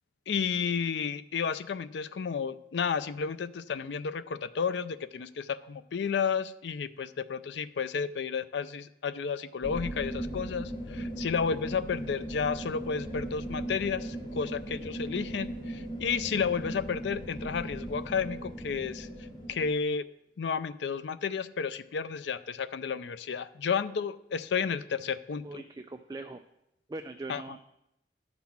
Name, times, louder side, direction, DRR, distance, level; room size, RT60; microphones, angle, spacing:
voice 1, 0.3-19.1 19.5-20.1 20.4-25.6 27.3-27.4, left 6 dB, 85° left, 14 dB, 0.4 m, -32 dB
sound 1, 9.6-19.7, right 1 dB, 25° left, 1.3 m, -38 dB
voice 2, 25.4-26.4 26.9-27.7, right 2 dB, 20° right, 6 dB, 0.3 m, -41 dB
11.5 x 4.0 x 7.1 m, 0.83 s
head